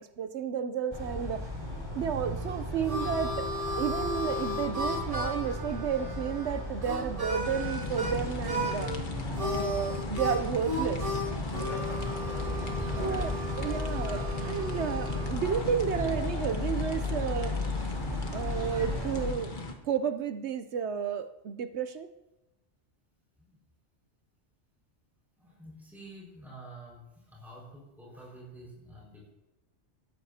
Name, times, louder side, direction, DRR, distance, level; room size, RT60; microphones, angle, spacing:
voice 1, 0.0-1.5 1.9-3.5 3.8-8.9 9.4-11.1 13.0-17.6 18.3-19.5 19.8-22.1, right 8 dB, 70° right, 10 dB, 1.0 m, -32 dB
sound 1, 0.9-19.3, left 1 dB, 20° right, 5.6 m, -36 dB
Harmonica, 2.4-8.2 8.4-9.0 9.3-15.4, left 1 dB, 45° right, 2.7 m, -35 dB
sound 2, 7.4-19.7, left 3 dB, 45° left, 1.4 m, -37 dB
voice 2, 12.3-13.1 23.4-23.6 25.4-29.3, right 1 dB, ahead, -5 dB, 5.0 m, -49 dB
18.0 x 14.0 x 2.8 m, 0.98 s
omnidirectional pair, 1.2 m